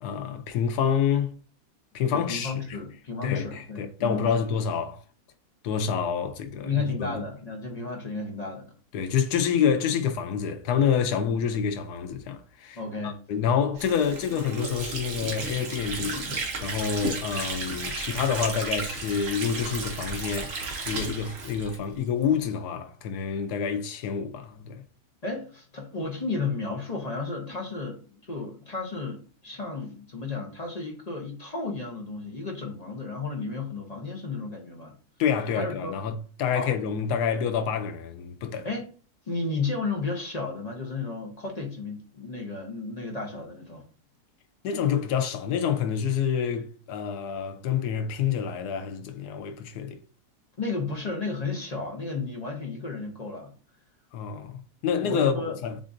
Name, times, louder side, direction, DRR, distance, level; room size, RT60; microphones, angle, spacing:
voice 1, 0.0-1.3 1.9-2.8 3.2-5.0 5.6-7.2 8.9-24.8 35.2-38.7 44.6-50.0 54.1-55.7, left 7 dB, 85° left, 1.2 m, -28 dB
voice 2, 2.1-4.3 6.6-8.8 12.7-13.2 25.2-34.9 35.5-35.9 36.5-36.7 38.6-38.9 39.3-43.8 50.6-53.5 55.0-55.6, left 3 dB, 35° left, 0.7 m, -33 dB
Water / Sink (filling or washing), 13.8-22.3, right 3 dB, 50° right, 1.0 m, -33 dB
7.3 x 2.5 x 2.5 m
omnidirectional pair, 1.7 m